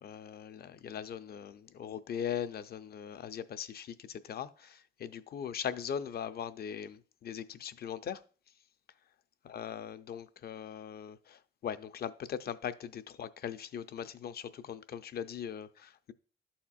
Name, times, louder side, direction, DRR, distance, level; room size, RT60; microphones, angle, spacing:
voice 1, 0.0-8.2 9.4-16.1, left 8 dB, 50° left, 0.5 m, -40 dB
12.0 x 4.3 x 2.4 m
cardioid pair, 90°, 20 cm